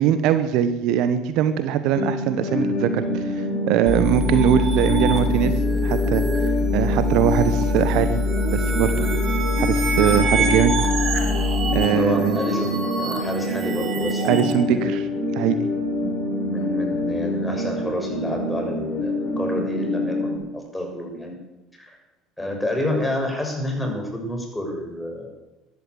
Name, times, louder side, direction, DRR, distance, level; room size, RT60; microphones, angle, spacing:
voice 1, 0.0-5.5 5.8-6.2 6.7-8.2 8.5-9.0 9.6-10.7 11.7-12.4 14.2-15.6, right 9 dB, 65° right, 11 dB, 1.1 m, -21 dB
sound 1, 1.9-20.4, left 1 dB, 55° left, 5.4 m, -26 dB
sound 2, 3.9-11.9, left 4 dB, 30° left, 0.4 m, -25 dB
sound 3, 3.9-14.5, right 4 dB, 40° right, 3.6 m, -29 dB
voice 2, 11.9-14.9 16.4-21.3 21.8-22.0 22.4-25.3, left 1 dB, 10° left, 2 dB, 6.7 m, -29 dB
14.0 x 11.0 x 8.5 m, 1.1 s
hypercardioid pair, 65°, 0 cm